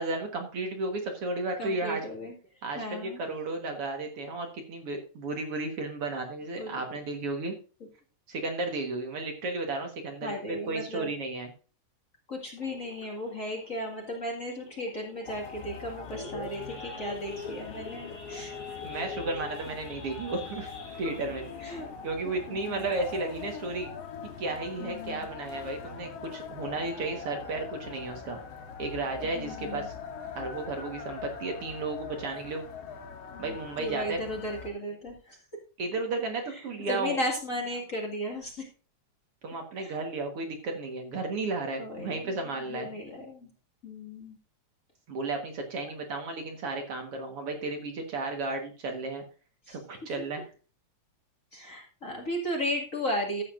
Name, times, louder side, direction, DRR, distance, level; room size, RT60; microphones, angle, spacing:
voice 1, 0.0-2.0 2.6-7.6 8.3-11.5 18.8-20.7 21.0-21.5 22.0-23.9 24.4-28.4 28.8-29.9 30.4-32.7 33.4-34.2 35.8-37.2 39.4-42.9 45.1-49.2 49.7-50.4, right 3 dB, 55° right, 3 dB, 2.3 m, -33 dB
voice 2, 1.6-2.4 2.8-3.2 6.6-6.8 10.2-11.1 12.3-18.5 19.1-19.2 21.6-21.9 22.5-22.9 24.8-25.2 29.3-29.9 33.3-35.4 36.5-38.7 39.7-40.0 41.8-43.5 43.8-44.4 49.7-49.8 51.5-53.4, equal, 30° left, 0 dB, 2.1 m, -35 dB
Idling / Accelerating revving vroom / Sawing, 12.6-23.7 24.0-24.3 24.5-24.6 25.1-25.3 25.8-25.9 26.1-26.5, left 3 dB, 10° left, 2.3 m, -45 dB
sound 1, 15.3-34.7, left 6 dB, 65° left, 2.4 m, -42 dB
13.0 x 8.4 x 2.6 m, 0.36 s
omnidirectional pair, 3.3 m